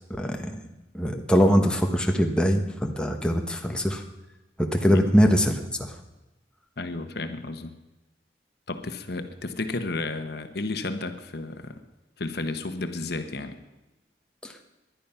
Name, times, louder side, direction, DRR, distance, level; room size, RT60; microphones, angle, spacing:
voice 1, 0.1-0.6 0.9-4.0 4.6-5.5 5.8-5.9, equal, 5° left, 3 dB, 1.2 m, -22 dB
voice 2, 6.8-7.7 8.7-11.8 12.2-13.5, left 2 dB, 60° left, 8 dB, 1.1 m, -32 dB
19.5 x 11.5 x 5.7 m, 1.1 s
head